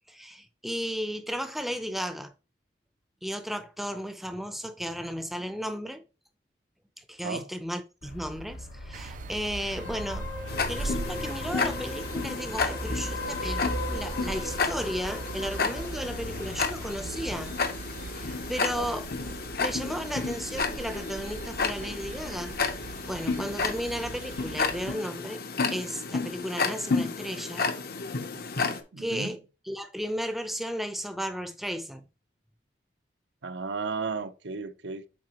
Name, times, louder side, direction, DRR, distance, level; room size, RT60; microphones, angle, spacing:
voice 1, 0.1-2.3 3.2-6.0 7.0-10.3 10.7-17.5 18.0-19.1 19.6-25.4 25.7-27.7 29.0-32.0, equal, ahead, 0.6 m, -34 dB
sound 1, 8.0-17.6, left 1 dB, 80° left, 1.3 m, -37 dB
sound 2, 8.9-25.0, right 4 dB, 45° right, 0.3 m, -41 dB
Tick-tock, 10.5-28.8, left 4 dB, 55° left, 0.8 m, -32 dB
voice 2, 28.9-29.4 33.4-35.0, right 4 dB, 70° right, 0.7 m, -34 dB
7.6 x 4.7 x 2.9 m
head